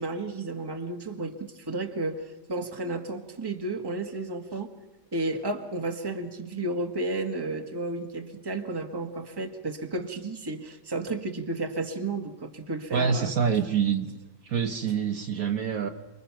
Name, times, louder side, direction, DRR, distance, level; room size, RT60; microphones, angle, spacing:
voice 1, 0.0-4.7 5.1-13.3, right 2 dB, 15° right, 4 dB, 1.5 m, -32 dB
voice 2, 12.9-14.1 14.4-15.9, right 7 dB, 60° right, 6 dB, 1.4 m, -26 dB
29.0 x 21.5 x 5.9 m, 1.0 s
omnidirectional pair, 1.8 m